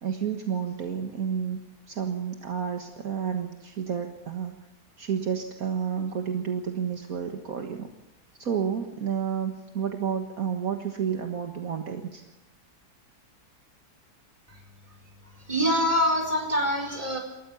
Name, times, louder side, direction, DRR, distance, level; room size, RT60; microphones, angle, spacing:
voice 1, 0.0-1.6 1.9-4.6 5.0-7.9 8.4-12.2, right 7 dB, 60° right, 4 dB, 1.9 m, -30 dB
voice 2, 15.5-17.2, equal, 20° right, 2 dB, 4.8 m, -24 dB
28.0 x 14.0 x 7.1 m, 1.0 s
omnidirectional pair, 1.7 m